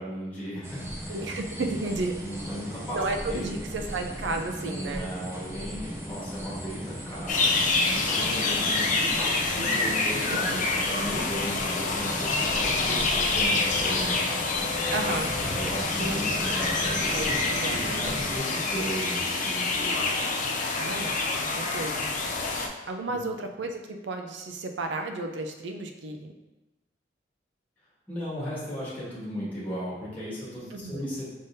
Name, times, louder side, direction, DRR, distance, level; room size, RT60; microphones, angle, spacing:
voice 1, 0.0-1.2 1.5-1.7 2.2-3.0 3.3-3.6 4.7-14.1 15.4-19.9 23.1-23.2 28.1-31.3, equal, 10° left, -7 dB, 1.5 m, -36 dB
sound 1, 0.6-18.4, equal, 15° right, 0.5 m, -37 dB
voice 2, 1.1-2.1 2.9-5.1 10.3-10.7 12.9-13.1 14.9-15.3 16.0-16.1 17.1-17.8 20.8-22.1 22.9-26.3 30.7-31.1, right 2 dB, 75° right, 4 dB, 0.5 m, -33 dB
sound 2, 7.3-22.7, left 3 dB, 45° left, 0.5 m, -27 dB
sound 3, 8.0-15.8, left 5 dB, 45° right, 1.6 m, -44 dB
5.3 x 3.7 x 2.7 m, 1.0 s
head